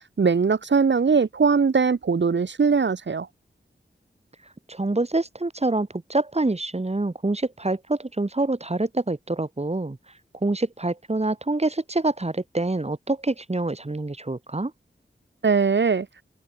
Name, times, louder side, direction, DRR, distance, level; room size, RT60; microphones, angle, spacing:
voice 1, 0.2-3.3 15.4-16.1, right 5 dB, 65° right, 1.2 m, -20 dB
voice 2, 4.7-10.0 10.4-14.7, right 2 dB, 30° right, 3.0 m, -26 dB
open air
wide cardioid pair, 85°, 20 cm